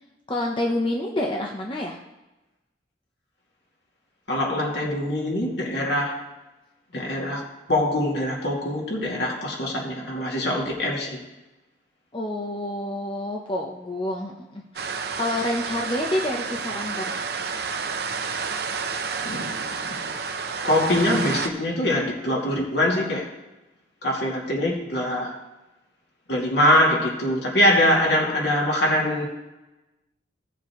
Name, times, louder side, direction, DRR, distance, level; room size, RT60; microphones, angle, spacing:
voice 1, 0.3-2.0 12.1-17.2, left 1 dB, 25° left, -1 dB, 0.8 m, -28 dB
voice 2, 4.3-6.2 6.9-7.4 7.7-11.2 19.2-19.7 20.6-23.3 24.0-25.4 26.3-29.2, left 1 dB, 65° left, -2 dB, 2.5 m, -23 dB
sound 1, 14.8-21.5, right 5 dB, 55° right, 0.8 m, -30 dB
16.5 x 7.1 x 3.1 m, 1.0 s
head